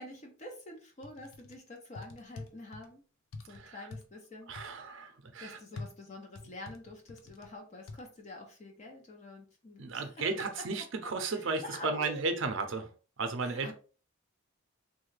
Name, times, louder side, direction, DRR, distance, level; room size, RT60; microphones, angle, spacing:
voice 1, 0.0-3.0 3.5-4.5 5.4-10.1 10.4-10.5 11.3-12.1 13.4-13.7, left 2 dB, 35° left, 0.6 m, -46 dB
sound 1, 1.0-1.6 1.9-2.9 3.3-4.0 4.6-4.7 5.8-7.5 7.9-8.0, left 3 dB, 90° left, 0.5 m, -45 dB
voice 2, 3.5-3.9 4.5-5.6 9.8-12.9 13.2-13.7, right 3 dB, 70° right, 0.6 m, -34 dB
3.2 x 2.3 x 3.2 m
head